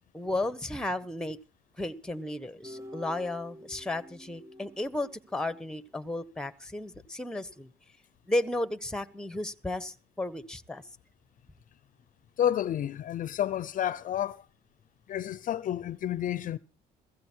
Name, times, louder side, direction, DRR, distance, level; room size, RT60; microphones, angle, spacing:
voice 1, 0.1-1.4 1.8-7.7 8.3-10.8, left 1 dB, 5° left, 1.3 m, -34 dB
sound 1, 2.6-5.9, equal, 15° right, 1.1 m, -48 dB
voice 2, 12.4-14.4 15.1-16.6, left 10 dB, 50° left, 0.7 m, -30 dB
16.0 x 15.5 x 4.6 m
cardioid pair, 110°, 17 cm